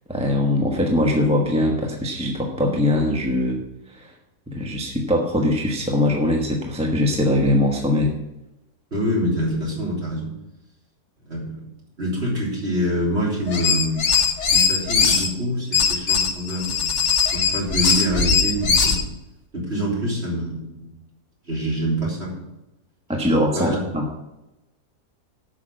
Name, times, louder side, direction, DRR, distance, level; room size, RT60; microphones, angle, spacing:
voice 1, 0.1-3.6 3.9-4.1 4.5-8.1 23.1-24.1, left 1 dB, 5° right, 0 dB, 1.1 m, -21 dB
voice 2, 8.9-10.3 11.3-11.6 12.0-14.2 14.5-17.0 17.3-19.1 19.5-20.9 21.4-22.3 23.5-23.8, equal, 40° right, -4 dB, 3.9 m, -25 dB
sound 1, 13.5-15.3 15.7-19.0, left 6 dB, 45° left, 1.3 m, -20 dB
8.6 x 6.4 x 7.7 m, 0.95 s
omnidirectional pair, 1.8 m